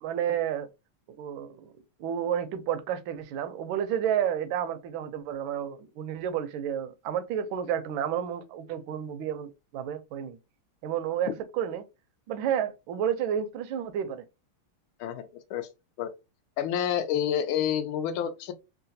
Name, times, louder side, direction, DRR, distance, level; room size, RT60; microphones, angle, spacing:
voice 1, 0.0-0.7 1.1-1.7 2.0-10.4 10.8-11.8 12.3-14.2, right 9 dB, 75° right, 1.2 m, -31 dB
voice 2, 15.0-15.7 16.0-16.1 16.6-18.5, left 9 dB, 80° left, 1.4 m, -29 dB
3.8 x 2.2 x 2.6 m
omnidirectional pair, 2.3 m